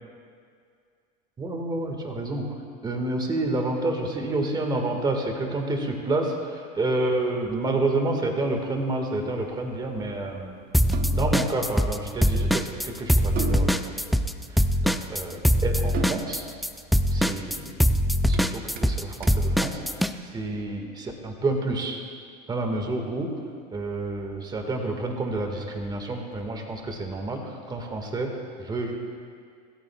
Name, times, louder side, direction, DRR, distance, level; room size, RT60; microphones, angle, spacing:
voice 1, 1.4-10.6 11.1-14.1 14.5-16.5 17.1-17.7 18.3-22.0 22.5-23.3 23.7-28.3 28.6-29.0, right 2 dB, 20° right, 3 dB, 1.8 m, -29 dB
sound 1, 8.4-20.5, right 8 dB, 45° right, 0.9 m, -41 dB
sound 2, 10.7-12.0 12.2-20.1, equal, ahead, 0.4 m, -22 dB
25.5 x 14.0 x 2.4 m, 2.2 s
supercardioid pair, 120°, 21 cm